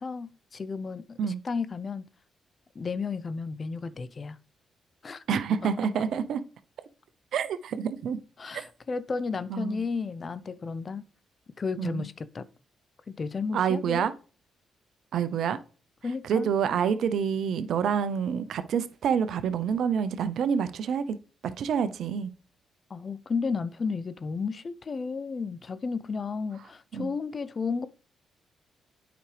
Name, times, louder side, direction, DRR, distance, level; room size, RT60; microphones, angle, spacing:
voice 1, 0.0-2.0 2.8-4.4 5.0-5.2 8.4-11.0 11.6-12.4 13.1-14.1 16.0-16.5 22.9-27.9, left 4 dB, 45° left, 0.5 m, -33 dB
voice 2, 5.3-6.4 7.3-8.2 8.5-8.6 9.5-9.8 11.8-12.1 13.5-14.1 15.1-15.6 16.2-21.2 21.6-22.3 26.9-27.1, right 7 dB, 70° right, 0.6 m, -27 dB
9.0 x 5.0 x 3.3 m
hypercardioid pair, 50°, 0 cm